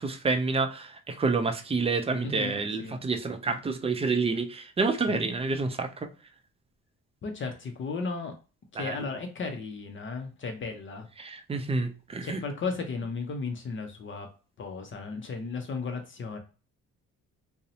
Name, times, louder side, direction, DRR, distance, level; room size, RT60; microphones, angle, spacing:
voice 1, 0.0-6.1 8.8-9.0 11.2-12.4, right 4 dB, 20° right, 0.3 m, -28 dB
voice 2, 2.2-3.0 5.1-5.3 7.2-8.3 8.7-11.1 12.2-14.3 14.6-16.4, left 4 dB, 40° left, 0.5 m, -35 dB
2.6 x 2.0 x 2.7 m
cardioid pair, 90°, 30 cm